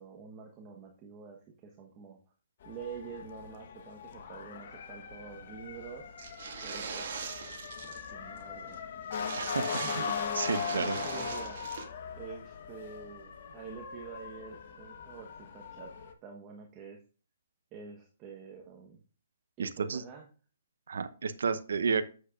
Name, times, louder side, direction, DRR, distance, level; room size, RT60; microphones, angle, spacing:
voice 1, 0.0-2.2 2.6-6.1 6.6-7.2 7.8-8.8 9.6-10.4 10.7-11.6 12.2-16.0 16.2-17.0 17.7-19.0 19.6-20.3, right 6 dB, 25° right, 1 dB, 1.2 m, -47 dB
Motor vehicle (road) / Siren, 2.6-16.1, left 7 dB, 55° left, 1.3 m, -40 dB
sound 1, 6.2-8.1 8.4-8.5 8.7-8.8 9.1-11.8, right 6 dB, 55° right, 2.0 m, -41 dB
voice 2, 10.3-11.0 19.6-20.0 20.9-22.2, right 5 dB, 80° right, 13 dB, 0.8 m, -31 dB
8.5 x 8.0 x 2.5 m, 0.37 s
hypercardioid pair, 155°, 0 cm